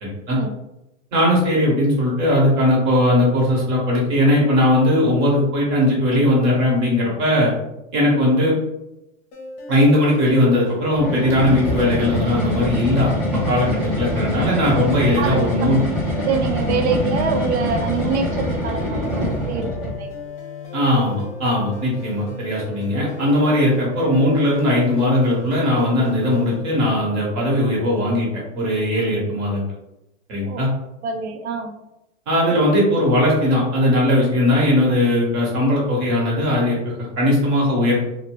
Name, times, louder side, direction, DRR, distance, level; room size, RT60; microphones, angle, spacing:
voice 1, 0.0-0.4 1.1-7.5 7.9-8.5 9.7-15.8 20.7-28.3 28.5-29.6 30.3-30.7 32.3-38.0, left 1 dB, 35° right, -4 dB, 1.1 m, -19 dB
sound 1, 9.3-26.6, left 2 dB, 40° left, 0.7 m, -36 dB
sound 2, 10.9-20.0, left 1 dB, ahead, 0.3 m, -24 dB
voice 2, 16.2-19.7 20.0-20.2 30.5-30.6 31.0-31.7, right 5 dB, 60° right, 5 dB, 0.6 m, -24 dB
2.7 x 2.1 x 2.9 m, 0.89 s
supercardioid pair, 150°, 37 cm